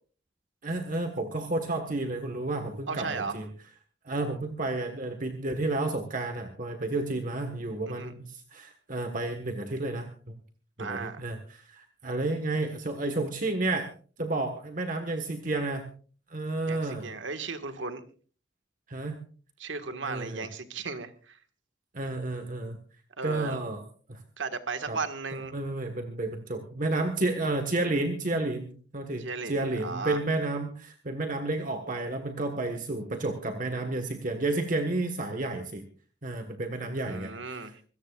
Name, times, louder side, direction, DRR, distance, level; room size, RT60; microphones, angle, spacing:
voice 1, 0.6-3.5 4.0-10.3 10.8-13.9 14.2-15.9 16.3-17.1 18.9-19.2 20.0-20.5 21.9-22.8 23.2-23.8 24.1-24.2 24.9-25.0 25.5-35.8 36.2-37.7, right 2 dB, 45° right, 6 dB, 1.4 m, -31 dB
voice 2, 2.9-3.4 7.9-8.1 10.8-11.2 16.7-18.0 19.6-21.4 23.2-23.6 24.4-25.5 29.2-30.2 37.0-37.8, right 4 dB, 85° right, 8 dB, 1.7 m, -35 dB
25.5 x 17.0 x 2.4 m, 0.40 s
head